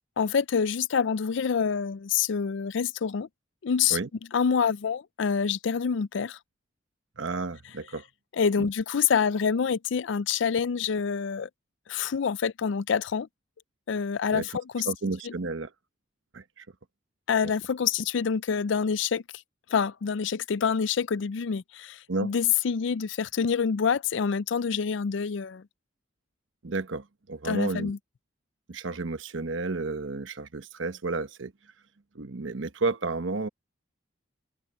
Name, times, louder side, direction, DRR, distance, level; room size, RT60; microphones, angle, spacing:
voice 1, 0.2-3.3 3.6-4.0 4.3-6.4 8.3-11.5 11.9-13.3 13.9-14.9 15.2-15.3 17.3-19.2 19.7-25.6 27.4-28.0, left 6 dB, 70° left, 0.4 m, -26 dB
voice 2, 7.2-8.0 8.6-8.7 14.3-14.6 14.9-15.7 16.3-16.4 22.1-22.3 26.6-27.9 28.7-31.5 32.1-33.5, right 3 dB, 80° right, 1.0 m, -31 dB
open air
head